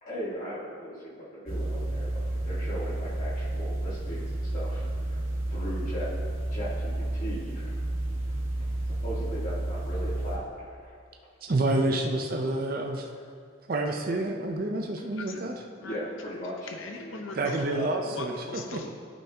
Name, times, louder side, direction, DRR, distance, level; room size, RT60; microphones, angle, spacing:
voice 1, 0.0-5.2 5.5-6.1 6.5-7.9 8.3-8.4 9.0-11.0 12.9-13.0 15.8-16.7 17.7-17.9, equal, 40° left, -10 dB, 1.4 m, -38 dB
sound 1, 1.5-10.4, right 1 dB, 90° right, 1.6 m, -31 dB
voice 2, 11.4-13.1 13.7-15.5 17.4-18.8, right 2 dB, 45° right, 3 dB, 0.5 m, -28 dB
voice 3, 15.1-15.4 15.8-16.0 16.7-18.9, left 2 dB, 75° left, 3 dB, 0.8 m, -40 dB
13.5 x 5.6 x 2.8 m, 2.2 s
head